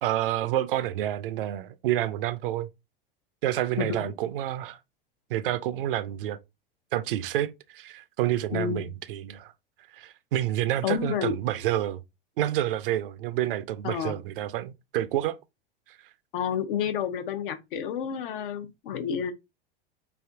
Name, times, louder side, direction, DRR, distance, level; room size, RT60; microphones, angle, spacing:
voice 1, 0.0-2.7 3.4-4.8 5.3-6.4 6.9-9.5 9.9-12.0 12.4-15.4, right 12 dB, 65° right, 0.5 m, -28 dB
voice 2, 3.8-4.1 8.5-8.9 10.8-11.3 13.8-14.2 16.3-19.3, left 8 dB, 65° left, 0.8 m, -30 dB
3.4 x 2.6 x 3.5 m
hypercardioid pair, 90°, 29 cm